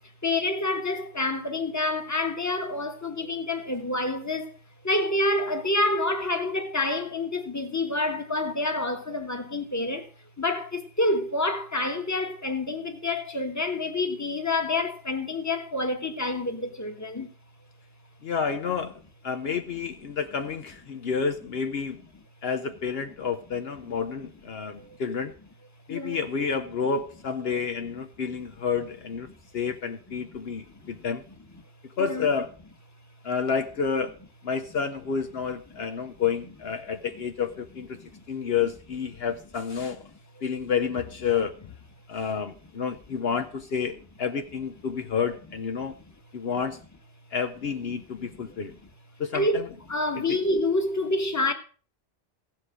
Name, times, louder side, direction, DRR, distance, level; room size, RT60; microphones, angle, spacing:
voice 1, 0.2-4.5 4.8-10.0 10.4-17.3 25.9-26.2 32.0-32.3 49.3-49.6 49.9-51.5, left 2 dB, 15° left, 1.4 m, -27 dB
voice 2, 18.2-19.0 19.2-22.0 22.4-25.3 25.9-29.3 29.5-31.2 32.0-32.5 33.2-34.1 34.4-37.9 38.3-40.0 40.4-41.6 42.1-45.9 46.3-46.8 47.3-48.7 49.2-49.6 50.2-50.4, left 6 dB, 65° left, 1.0 m, -29 dB
15.5 x 7.6 x 5.0 m
omnidirectional pair, 1.1 m